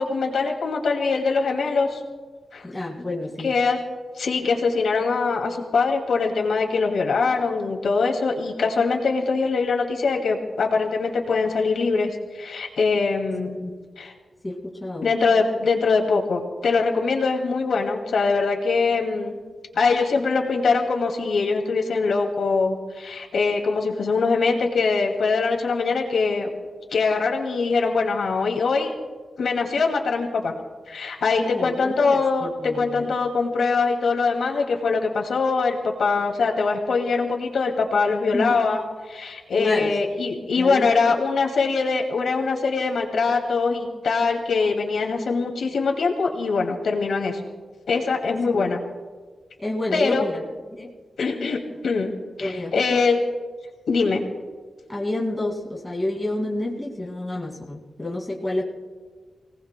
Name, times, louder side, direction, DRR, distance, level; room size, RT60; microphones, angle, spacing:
voice 1, 0.0-2.0 2.5-2.6 3.4-3.8 4.2-13.6 14.0-14.1 15.0-19.4 19.7-26.5 26.9-29.0 29.4-30.5 30.9-47.4 47.9-48.8 49.9-50.2 51.2-52.1 52.4-53.2 53.9-54.2, left 4 dB, 85° left, 1 dB, 2.3 m, -23 dB
voice 2, 2.6-3.5 13.5-13.7 14.4-15.1 31.4-33.1 38.3-38.6 39.6-40.2 40.6-41.1 48.5-48.6 49.6-50.9 52.4-53.0 54.9-58.6, left 1 dB, 15° left, -2 dB, 2.3 m, -29 dB
29.0 x 18.5 x 2.2 m, 1.5 s
wide cardioid pair, 175°, 0 cm